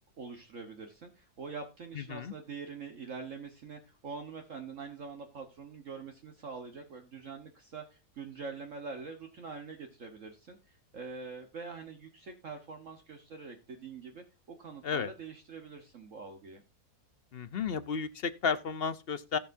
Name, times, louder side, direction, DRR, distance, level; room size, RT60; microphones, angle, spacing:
voice 1, 0.2-16.6, right 4 dB, 55° right, 1.6 m, -44 dB
voice 2, 2.0-2.3 14.8-15.1 17.3-19.4, left 6 dB, 50° left, 0.8 m, -33 dB
17.0 x 6.7 x 2.6 m
omnidirectional pair, 1.7 m